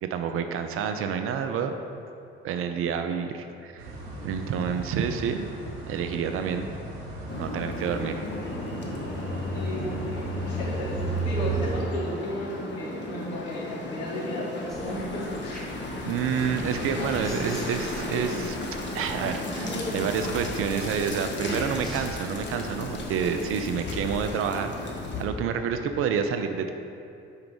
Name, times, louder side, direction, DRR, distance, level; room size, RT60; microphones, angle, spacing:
voice 1, 0.0-1.7 2.4-4.0 4.2-5.5 5.9-6.7 7.4-8.2 16.0-18.6 18.9-26.7, right 7 dB, 45° right, 7 dB, 0.4 m, -29 dB
sound 1, 3.8-11.8, right 2 dB, 70° right, 1.1 m, -34 dB
sound 2, 7.3-25.2, left 2 dB, 35° left, 0.9 m, -35 dB
voice 2, 9.5-15.6 16.6-17.7 19.6-19.9 20.9-21.1 21.4-21.9, left 1 dB, 70° left, -4 dB, 1.2 m, -34 dB
sound 3, 14.7-24.4, right 1 dB, ahead, 1.1 m, -42 dB
4.8 x 4.5 x 5.2 m, 2.6 s
figure-of-eight pair, 45°, 32 cm